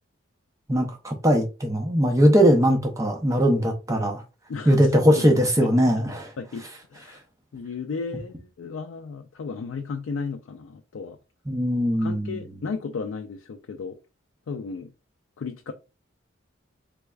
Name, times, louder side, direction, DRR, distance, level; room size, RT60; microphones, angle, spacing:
voice 1, 0.7-4.2 4.7-6.3 11.5-12.5, equal, 15° right, 0.6 m, -20 dB
voice 2, 4.5-5.3 5.6-5.7 6.4-7.2 7.5-11.2 12.0-14.0 14.5-14.9 15.4-15.7, left 5 dB, 80° left, 0.4 m, -34 dB
3.4 x 3.3 x 2.3 m
head